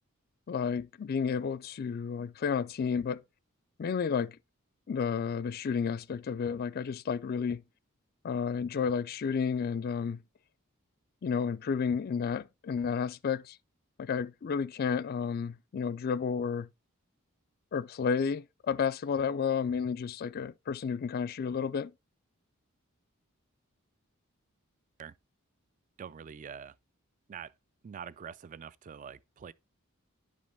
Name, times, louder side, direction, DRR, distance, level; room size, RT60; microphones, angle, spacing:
voice 1, 0.5-3.2 3.8-4.4 4.9-7.6 8.2-10.2 11.2-13.6 14.0-16.7 17.7-21.9, left 6 dB, 45° left, 0.3 m, -31 dB
voice 2, 26.0-26.7 27.3-27.5 27.8-29.5, right 7 dB, 35° right, 0.3 m, -45 dB
10.0 x 5.3 x 3.3 m
head